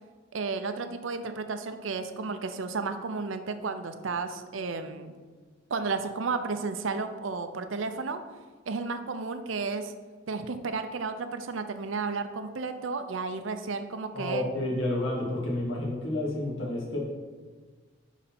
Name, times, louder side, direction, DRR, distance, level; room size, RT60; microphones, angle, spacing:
voice 1, 0.3-5.1 5.7-8.2 8.7-9.9 10.3-14.5, right 4 dB, 75° right, 9 dB, 0.6 m, -33 dB
voice 2, 14.1-17.0, left 1 dB, 70° left, -4 dB, 2.3 m, -30 dB
10.5 x 4.1 x 4.3 m, 1.4 s
head